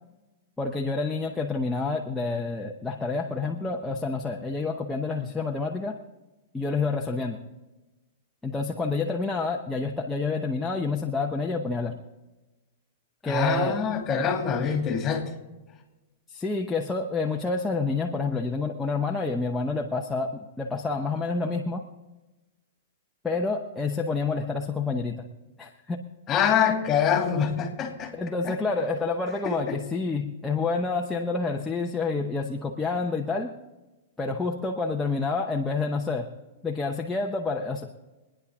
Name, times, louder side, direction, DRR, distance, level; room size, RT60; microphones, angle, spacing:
voice 1, 0.6-6.0 6.5-7.4 8.4-12.0 13.2-13.8 16.3-21.8 23.2-25.3 25.6-26.0 28.1-33.5 34.2-36.3 36.6-37.9, left 3 dB, 10° left, 0 dB, 0.9 m, -28 dB
voice 2, 13.2-15.3 26.3-28.1 28.4-28.5 29.4-29.8, left 7 dB, 25° left, 4 dB, 2.7 m, -25 dB
24.0 x 10.0 x 3.7 m, 1.1 s
hypercardioid pair, 130°, 0 cm